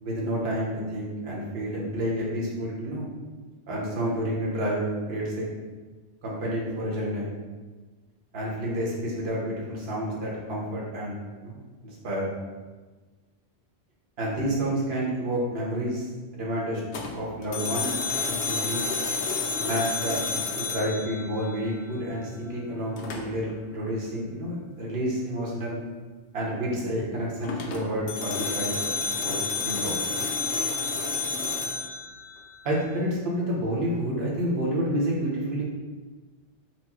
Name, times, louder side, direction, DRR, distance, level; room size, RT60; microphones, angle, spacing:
voice 1, 0.0-3.1 3.7-5.5 6.2-7.3 8.3-11.6 11.8-12.3 14.2-16.1 16.3-16.8 17.1-18.0 18.3-18.8 19.6-20.3 20.6-25.8 26.3-28.8 29.2-30.0 32.6-35.6, equal, 70° right, -4 dB, 1.2 m, -29 dB
sound 1, 16.9-21.9 23.0-23.5 27.4-32.9, left 4 dB, 90° left, 0.9 m, -30 dB
4.5 x 2.1 x 4.2 m, 1.3 s
omnidirectional pair, 1.1 m